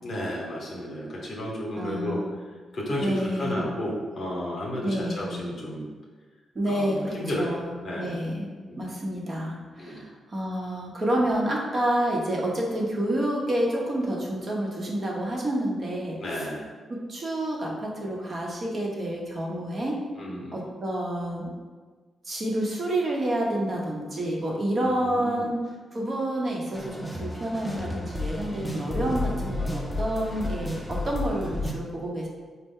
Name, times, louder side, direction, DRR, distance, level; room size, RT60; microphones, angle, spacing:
voice 1, 0.0-2.5 2.7-5.9 6.7-8.2 8.7-8.9 9.8-10.0 16.2-16.7 20.2-20.6 24.6-25.5 28.6-29.1, equal, 65° left, -3 dB, 0.8 m, -33 dB
voice 2, 1.8-2.4 3.0-3.7 4.8-5.4 6.5-8.5 8.8-16.5 16.9-20.0 20.5-21.5 22.2-25.6 25.9-32.3, right 1 dB, 50° right, -3 dB, 0.9 m, -29 dB
sound 1, 26.7-31.7, left 2 dB, 10° left, 0.6 m, -32 dB
4.3 x 2.2 x 3.6 m, 1.4 s
supercardioid pair, 55°, 0 cm